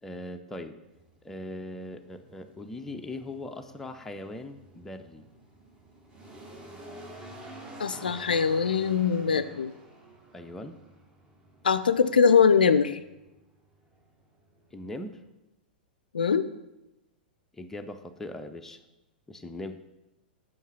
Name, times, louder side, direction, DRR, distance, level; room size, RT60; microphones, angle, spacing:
voice 1, 0.0-0.8 1.2-5.3 10.3-10.8 14.7-15.2 17.5-18.8 19.3-19.8, left 1 dB, 5° left, 5 dB, 0.5 m, -40 dB
sound 1, 0.8-15.3, right 1 dB, 20° right, 1.3 m, -50 dB
voice 2, 7.8-9.7 11.6-13.0 16.1-16.4, left 6 dB, 70° left, 13 dB, 0.3 m, -22 dB
5.7 x 5.4 x 6.0 m, 0.98 s
figure-of-eight pair, 100°, 5 cm